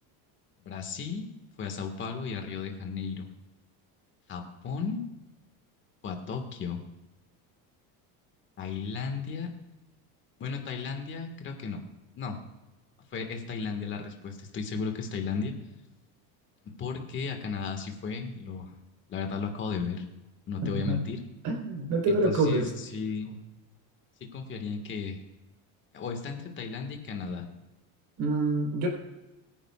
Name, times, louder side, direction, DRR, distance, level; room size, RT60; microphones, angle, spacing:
voice 1, 0.6-1.3 1.6-3.3 4.3-5.0 6.0-6.8 8.6-9.5 10.4-11.8 12.1-12.4 13.1-15.5 16.8-18.7 19.1-20.1 20.5-21.2 22.1-23.4 24.3-25.2 25.9-27.5, left 5 dB, 30° left, 4 dB, 1.7 m, -34 dB
voice 2, 21.4-22.7 28.2-28.9, right 2 dB, 45° right, 2 dB, 3.8 m, -26 dB
23.0 x 9.9 x 2.4 m, 1.0 s
cardioid pair, 175°, 42 cm